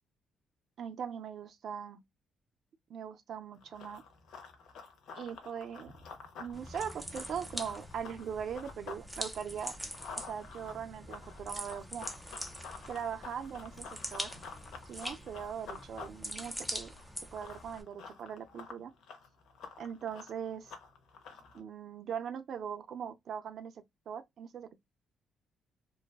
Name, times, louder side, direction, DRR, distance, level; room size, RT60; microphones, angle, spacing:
voice 1, 0.8-2.0 2.9-4.0 5.2-5.9 6.4-9.7 10.2-12.1 12.9-14.3 14.9-16.9 17.3-18.9 19.8-20.7 21.5-24.8, right 7 dB, 65° right, 0.4 m, -40 dB
Run, 3.6-9.0 9.4-21.6, left 5 dB, 80° left, 0.7 m, -49 dB
sound 1, 6.5-17.8, equal, ahead, 0.6 m, -44 dB
2.6 x 2.2 x 2.3 m
cardioid pair, 90°, 0 cm